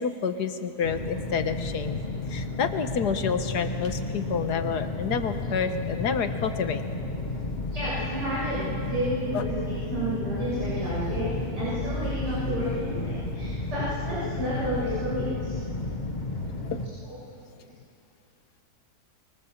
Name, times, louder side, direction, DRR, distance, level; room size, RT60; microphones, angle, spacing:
voice 1, 0.0-2.0 2.3-6.8 9.3-9.4 16.6-16.8, left 6 dB, 75° left, 8 dB, 1.8 m, -29 dB
sound 1, 0.8-16.9, left 2 dB, 30° left, 1.6 m, -32 dB
voice 2, 7.7-11.3 11.6-15.5, equal, 90° right, -10 dB, 8.8 m, -31 dB
24.5 x 23.5 x 7.4 m, 2.5 s
omnidirectional pair, 1.8 m